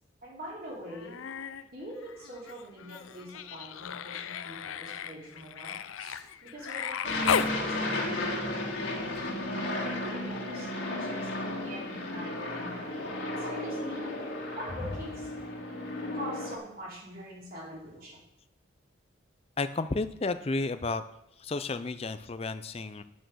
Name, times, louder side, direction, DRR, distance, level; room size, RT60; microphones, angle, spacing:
voice 1, 0.2-1.2 1.7-9.3 9.8-14.1 14.6-15.3 16.1-18.2, equal, 45° right, -5 dB, 3.1 m, -43 dB
Human voice, 0.9-1.6 2.0-7.6 9.2-9.3, left 7 dB, 90° left, 0.5 m, -35 dB
Aircraft, 7.0-16.6, left 1 dB, 60° left, 2.3 m, -34 dB
voice 2, 19.6-21.0 21.4-23.0, left 3 dB, 30° left, 11 dB, 0.4 m, -32 dB
9.1 x 6.3 x 6.3 m, 0.84 s
head